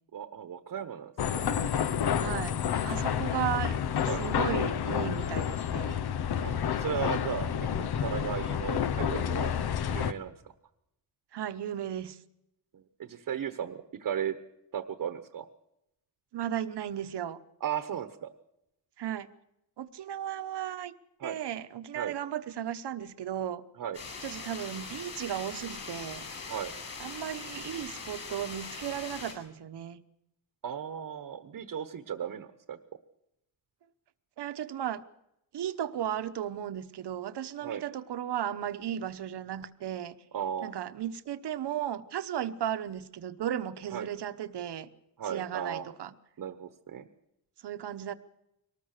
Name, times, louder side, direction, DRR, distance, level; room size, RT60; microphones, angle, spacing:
voice 1, 0.1-1.5 4.1-4.2 6.4-7.5 7.8-9.5 9.9-10.3 12.7-14.3 14.7-15.4 17.6-18.3 21.2-21.4 21.9-22.1 23.8-24.0 26.5-26.7 30.6-32.8 37.6-37.8 40.3-40.8 43.9-44.1 45.2-45.9 46.4-47.1, right 8 dB, 55° right, 1.1 m, -36 dB
sound 1, 1.2-10.1, left 8 dB, 65° left, 1.0 m, -29 dB
voice 2, 2.2-2.6 2.8-3.8 4.2-6.0 11.3-12.2 16.3-17.4 19.0-19.3 19.8-20.9 21.2-23.6 24.2-26.3 27.0-30.0 34.4-35.0 35.5-40.2 40.6-44.9 45.3-46.1 47.6-48.1, right 10 dB, 75° right, 1.1 m, -35 dB
sound 2, 23.9-29.3, left 4 dB, 40° left, 7.7 m, -41 dB
23.5 x 19.0 x 6.7 m
wide cardioid pair, 175°, 41 cm